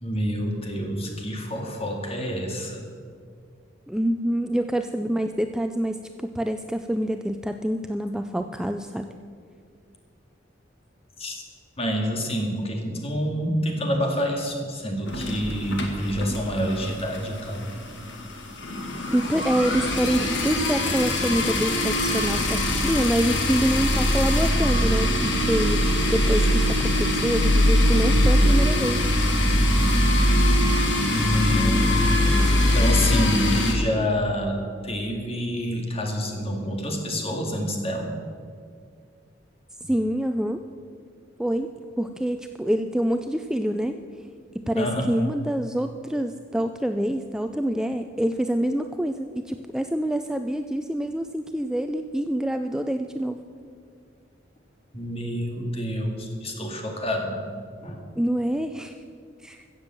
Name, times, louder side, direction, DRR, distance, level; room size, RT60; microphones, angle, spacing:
voice 1, 0.0-2.9 11.2-11.4 11.8-17.6 31.1-34.6 34.8-38.1 44.8-45.1 54.9-57.4 57.8-58.0, equal, 35° left, 2 dB, 2.1 m, -27 dB
voice 2, 3.9-9.2 19.1-29.1 39.9-40.6 41.4-41.7 42.0-44.0 44.5-53.4 58.2-58.9 59.4-59.6, right 1 dB, 5° right, 7 dB, 0.4 m, -26 dB
sound 1, 15.1-16.9 17.1-17.4 17.7-17.8 17.9-33.7, left 1 dB, 70° left, 1.9 m, -22 dB
15.0 x 7.4 x 7.4 m, 2.1 s
head